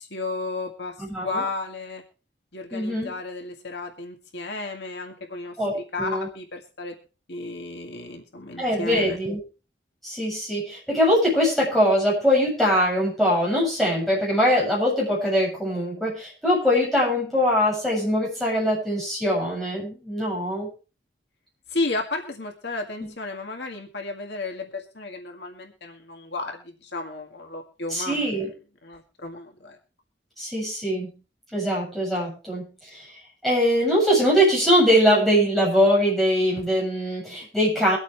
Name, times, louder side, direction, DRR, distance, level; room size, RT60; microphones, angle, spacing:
voice 1, 0.0-0.9 1.2-2.0 2.5-6.9 7.3-9.2 21.7-28.3 28.8-29.8, left 2 dB, 70° left, 3 dB, 1.9 m, -33 dB
voice 2, 1.0-1.4 2.7-3.1 5.6-6.3 8.6-9.4 10.0-20.7 27.9-28.5 30.4-31.1 31.5-32.7 32.9-33.1 33.4-38.0, equal, ahead, -6 dB, 7.4 m, -22 dB
23.5 x 8.3 x 3.4 m, 0.34 s
head